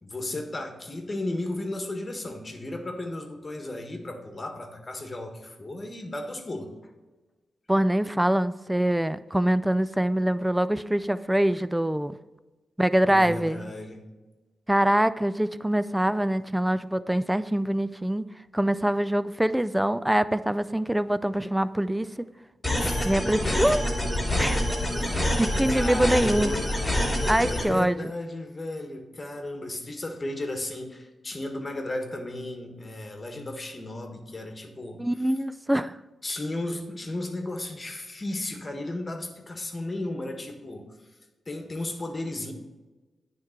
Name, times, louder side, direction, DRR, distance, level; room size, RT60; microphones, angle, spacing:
voice 1, 0.0-6.7 13.0-14.0 22.8-23.7 24.9-25.2 25.7-26.7 27.4-35.3 36.2-41.0 41.5-42.5, left 2 dB, 30° left, 4 dB, 1.5 m, -34 dB
voice 2, 7.7-12.2 12.8-13.7 14.7-18.3 18.5-22.3 23.0-23.8 24.4-24.6 25.1-26.5 27.3-28.1 35.0-36.0, right 1 dB, 10° right, 15 dB, 0.4 m, -24 dB
sound 1, 22.6-27.6, left 1 dB, 10° left, 2.7 m, -26 dB
9.5 x 3.7 x 5.8 m, 1.2 s
cardioid pair, 65°, 0 cm